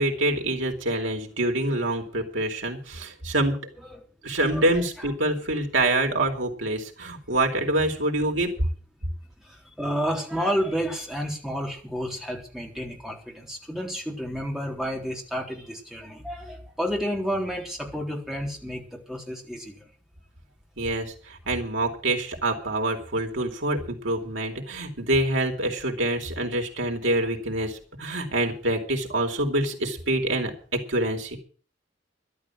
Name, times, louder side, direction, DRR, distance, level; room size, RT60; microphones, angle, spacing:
voice 1, 0.0-3.6 4.2-8.5 20.8-31.4, right 1 dB, 80° right, 2 dB, 4.1 m, -26 dB
voice 2, 4.5-5.1 9.4-19.8, equal, ahead, -1 dB, 3.8 m, -31 dB
13.5 x 12.0 x 6.4 m, 0.41 s
head